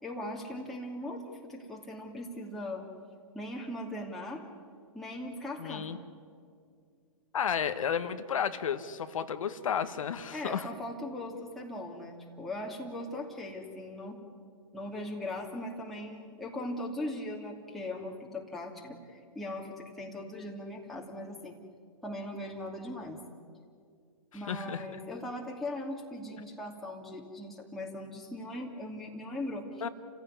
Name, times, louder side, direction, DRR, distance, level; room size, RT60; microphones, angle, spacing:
voice 1, 0.0-2.8 3.3-4.4 4.9-5.9 10.3-14.2 14.7-21.6 22.0-23.2 24.3-29.9, left 1 dB, ahead, -3 dB, 2.6 m, -39 dB
voice 2, 5.6-6.0 7.3-10.7 24.5-24.8 29.8-29.9, left 7 dB, 70° left, 9 dB, 1.5 m, -32 dB
30.0 x 15.5 x 9.9 m, 2.2 s
hypercardioid pair, 135°, 18 cm